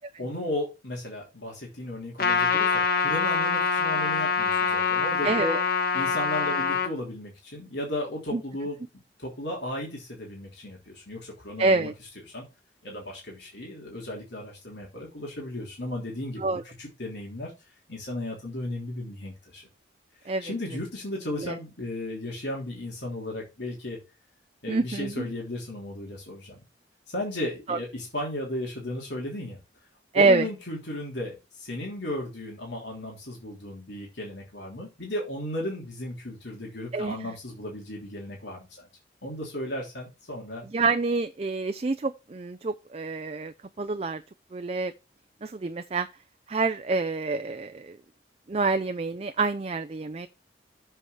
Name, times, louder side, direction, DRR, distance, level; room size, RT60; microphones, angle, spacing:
voice 1, 0.2-5.6 5.9-8.8 9.2-12.5 12.8-17.5 17.9-19.7 20.2-24.0 24.6-26.6 27.1-29.6 30.1-38.9 39.2-40.7, left 1 dB, 70° left, 3.3 m, -35 dB
Trumpet, 2.2-6.9, left 5 dB, 50° left, 1.3 m, -25 dB
voice 2, 5.2-5.6 8.3-8.4 11.6-11.9 16.4-16.6 20.3-20.5 21.4-21.5 24.7-25.2 27.7-27.8 30.1-30.5 36.9-37.2 40.7-44.2 44.5-44.9 45.4-46.1 46.5-48.0 48.5-50.3, right 3 dB, 35° right, 0.4 m, -27 dB
7.7 x 4.7 x 6.9 m
head